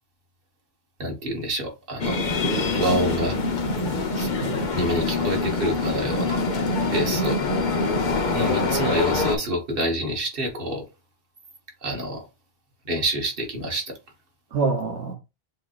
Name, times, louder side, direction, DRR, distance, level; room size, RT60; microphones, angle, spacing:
voice 1, 1.0-2.3 2.8-3.4 4.1-4.3 4.7-6.4 6.9-7.4 8.3-10.8 11.8-12.3 12.9-13.9, equal, 60° right, 1.6 m, -27 dB
sound 1, 2.0-9.4, left 3 dB, 50° left, 0.9 m, -25 dB
voice 2, 2.4-3.1 4.4-4.6 7.1-7.2 14.5-15.1, right 4 dB, 80° right, 1.3 m, -27 dB
7.1 x 2.8 x 2.5 m
omnidirectional pair, 1.1 m